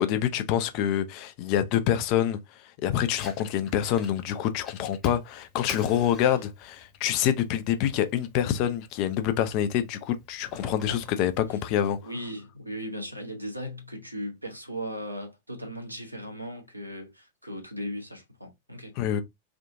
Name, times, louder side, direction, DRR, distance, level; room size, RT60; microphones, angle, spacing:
voice 1, 0.0-2.4 2.8-12.0 19.0-19.2, left 10 dB, 45° left, 0.5 m, -26 dB
Fire, 3.0-12.0, left 3 dB, 15° left, 1.0 m, -49 dB
voice 2, 12.0-18.9, equal, 90° right, 0.7 m, -37 dB
3.6 x 2.3 x 2.5 m
figure-of-eight pair, 90°, 0 cm